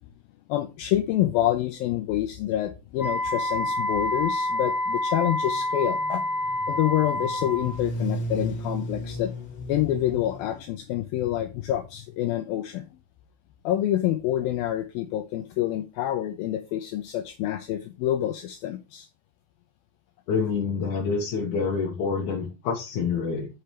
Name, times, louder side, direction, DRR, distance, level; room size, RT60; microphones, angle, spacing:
voice 1, 0.5-6.2 6.7-9.3 9.7-12.9 13.6-19.1, left 13 dB, 80° left, 2.1 m, -27 dB
Wind instrument woodwind instrument, 3.0-7.8, left 1 dB, 10° right, 1.7 m, -28 dB
sound 1, 5.5-10.6, right 1 dB, 45° left, 1.6 m, -35 dB
voice 2, 20.3-23.5, left 5 dB, 65° left, 2.1 m, -27 dB
7.9 x 5.1 x 4.4 m
omnidirectional pair, 4.8 m